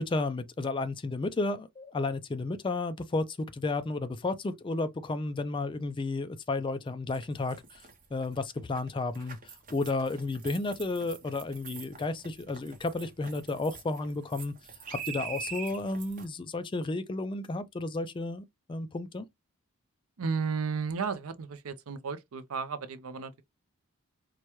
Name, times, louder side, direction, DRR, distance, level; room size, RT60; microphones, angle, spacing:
voice 1, 0.0-7.8 8.1-14.6 14.9-19.3, left 2 dB, 25° left, 0.3 m, -32 dB
sound 1, 7.1-16.3, right 6 dB, 40° right, 0.8 m, -45 dB
voice 2, 20.2-23.4, right 5 dB, 85° right, 0.5 m, -33 dB
4.6 x 2.2 x 2.9 m
head